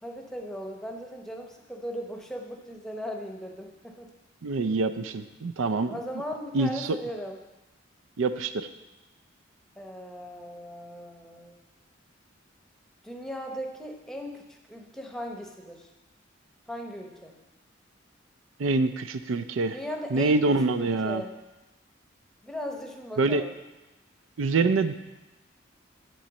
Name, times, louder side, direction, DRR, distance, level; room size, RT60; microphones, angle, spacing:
voice 1, 0.0-4.1 5.9-7.4 9.8-11.6 13.0-15.9 16.7-17.3 19.7-21.3 22.4-23.5, equal, ahead, 2 dB, 0.8 m, -38 dB
voice 2, 4.4-6.0 6.5-7.0 8.2-8.7 18.6-19.8 20.1-21.2 23.2-23.4 24.4-24.9, right 3 dB, 80° right, 11 dB, 0.5 m, -25 dB
9.1 x 4.3 x 7.0 m, 1.1 s
head